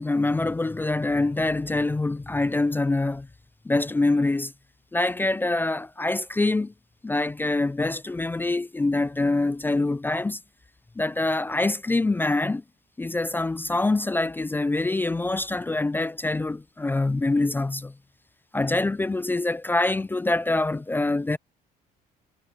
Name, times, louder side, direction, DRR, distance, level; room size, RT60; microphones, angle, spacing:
voice 1, 0.0-3.3 3.7-4.5 4.9-6.7 7.0-10.4 11.0-12.6 13.0-17.9 18.5-21.4, left 2 dB, 10° left, 0.4 m, -25 dB
cardioid pair, 110°, 17 cm